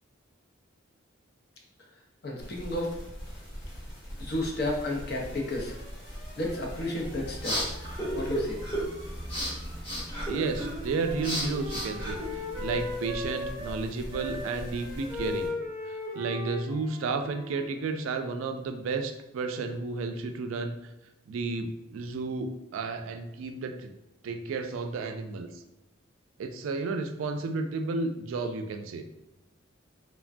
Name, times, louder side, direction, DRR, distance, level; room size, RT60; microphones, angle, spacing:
voice 1, 2.2-3.0 4.2-5.8 6.4-7.7 8.1-8.6, left 1 dB, 50° left, -1 dB, 0.6 m, -32 dB
sound 1, 2.4-15.5, equal, 70° left, 1.2 m, -42 dB
sound 2, 7.0-12.8, equal, 25° left, 1.0 m, -34 dB
Wind instrument woodwind instrument, 10.0-13.8 14.1-18.2, left 2 dB, 10° right, 0.5 m, -38 dB
voice 2, 10.3-15.6 15.8-20.8 21.3-23.9 24.2-25.5 26.4-29.0, right 4 dB, 80° right, 6 dB, 0.3 m, -32 dB
3.3 x 2.2 x 2.4 m, 0.90 s
head